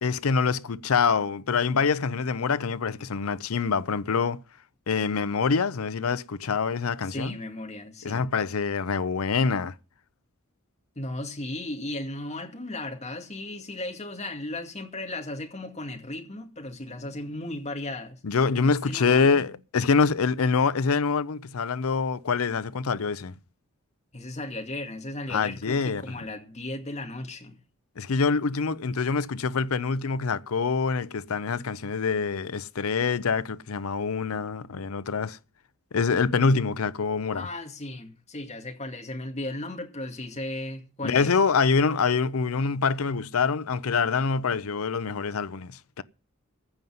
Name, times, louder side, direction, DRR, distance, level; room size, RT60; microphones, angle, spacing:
voice 1, 0.0-4.4 4.9-7.4 8.0-9.7 18.2-23.3 25.3-26.0 28.0-35.4 35.9-37.5 41.0-46.0, left 5 dB, 90° left, 0.6 m, -25 dB
voice 2, 7.0-8.2 11.0-18.2 18.7-19.5 24.1-27.6 37.3-41.3, left 1 dB, 30° left, 2.2 m, -36 dB
15.0 x 5.5 x 9.4 m
head